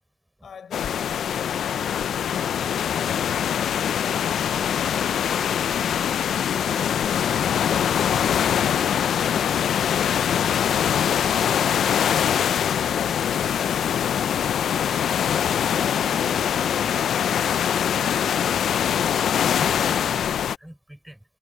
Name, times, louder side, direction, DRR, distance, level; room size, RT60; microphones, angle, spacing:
voice 1, 0.4-2.3 3.0-6.0, left 7 dB, 70° left, 4.7 m, -48 dB
sound 1, 0.7-20.6, left 9 dB, 85° left, 0.4 m, -23 dB
voice 2, 14.8-15.1 15.4-15.6 16.1-16.9 18.0-18.4 19.2-21.2, right 1 dB, 5° right, 5.4 m, -43 dB
cardioid pair, 80°, 0 cm